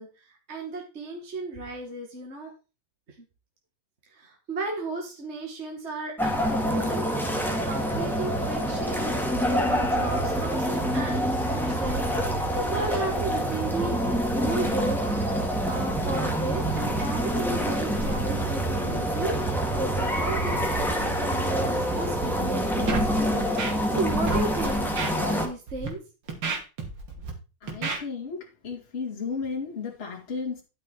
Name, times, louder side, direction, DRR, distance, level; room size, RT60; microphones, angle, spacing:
voice 1, 0.0-2.5 3.2-3.3 4.1-9.2 9.5-15.0 15.6-26.0, right 2 dB, 30° right, 1 dB, 2.2 m, -34 dB
sound 1, 6.2-25.5, equal, ahead, 1.7 m, -26 dB
Scratching (performance technique), 22.9-23.1 23.4-24.0 24.3-24.4 25.0-25.1 25.7-25.9 26.3-27.3 27.7-28.0, right 4 dB, 70° right, 3.3 m, -30 dB
voice 2, 27.6-30.6, left 5 dB, 30° left, -2 dB, 2.4 m, -34 dB
12.5 x 6.2 x 4.6 m, 0.31 s
omnidirectional pair, 2.4 m